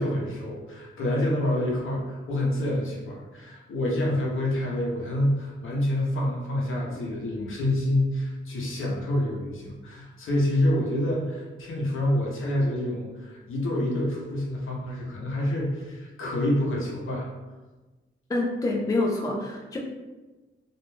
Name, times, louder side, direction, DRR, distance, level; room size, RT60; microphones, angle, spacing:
voice 1, 0.0-17.3, left 1 dB, 75° left, -3 dB, 0.7 m, -27 dB
voice 2, 18.3-19.8, left 2 dB, 15° left, -1 dB, 0.3 m, -26 dB
2.4 x 2.2 x 3.1 m, 1.2 s
wide cardioid pair, 150°, 21 cm